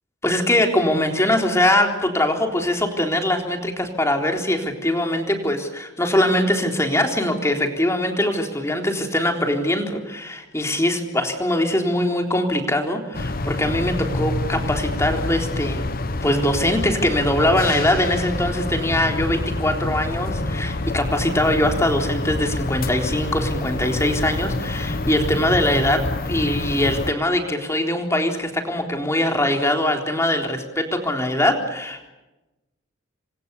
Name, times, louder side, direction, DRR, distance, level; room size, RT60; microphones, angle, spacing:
voice 1, 0.2-15.9 16.2-32.1, left 1 dB, 15° left, 3 dB, 3.7 m, -22 dB
sound 1, 13.1-27.1, left 2 dB, 50° left, 1.1 m, -27 dB
28.5 x 25.0 x 7.0 m, 1.0 s
head